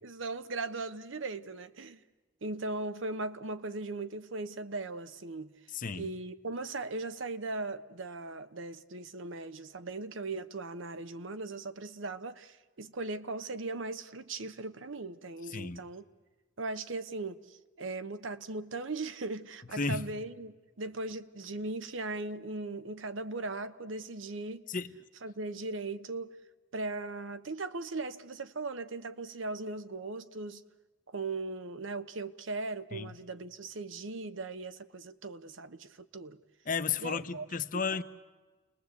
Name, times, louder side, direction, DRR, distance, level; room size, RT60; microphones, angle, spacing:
voice 1, 0.0-2.0 2.4-5.5 5.9-16.0 16.6-24.6 25.2-26.3 26.7-30.6 31.1-36.4 37.0-37.5 37.7-37.8, right 3 dB, 70° right, 0.9 m, -38 dB
voice 2, 5.7-6.1 15.4-15.8 19.7-20.1 24.7-24.9 32.9-33.1 36.7-38.0, left 5 dB, 40° left, 0.8 m, -33 dB
29.0 x 20.0 x 8.3 m
head